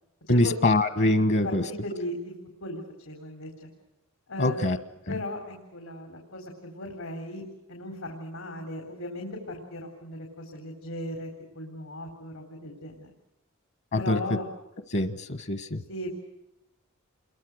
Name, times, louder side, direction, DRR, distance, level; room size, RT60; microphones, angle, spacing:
voice 1, 0.3-1.6 4.4-4.8 5.1-5.2 13.9-14.2 14.9-15.8, left 1 dB, 55° left, 10 dB, 1.3 m, -24 dB
voice 2, 1.4-2.3 2.6-3.7 4.3-4.7 5.1-7.4 7.7-13.1 13.9-14.5 15.9-16.1, left 1 dB, 85° left, 3 dB, 4.2 m, -37 dB
28.5 x 22.5 x 6.4 m, 0.92 s
head